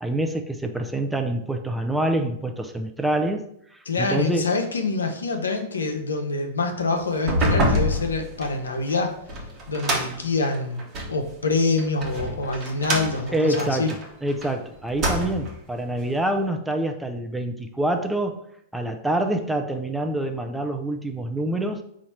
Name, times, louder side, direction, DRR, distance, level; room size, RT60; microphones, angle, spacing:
voice 1, 0.0-3.5 4.0-4.5 13.3-18.4 18.7-21.8, right 1 dB, 5° right, 5 dB, 0.5 m, -26 dB
voice 2, 3.9-9.1 9.7-10.8 11.1-13.9, left 3 dB, 80° left, 4 dB, 0.6 m, -25 dB
sound 1, 7.1-11.2 11.8-14.5 14.8-15.6, equal, 35° right, 1.0 m, -26 dB
4.1 x 2.5 x 4.4 m, 0.70 s
figure-of-eight pair, 100°, 0 cm